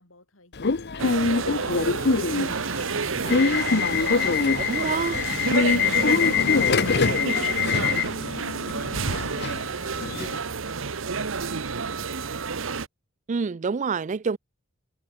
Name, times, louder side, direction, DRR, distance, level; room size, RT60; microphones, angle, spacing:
voice 1, 0.0-12.4, left 3 dB, 85° left, 5.9 m, -54 dB
Subway metro underground / Alarm, 0.6-10.4, left 5 dB, 55° left, 0.8 m, -24 dB
sound 1, 1.0-12.9, right 5 dB, 80° right, 1.0 m, -29 dB
voice 2, 4.7-5.2 13.3-14.4, right 5 dB, 40° right, 0.4 m, -27 dB
head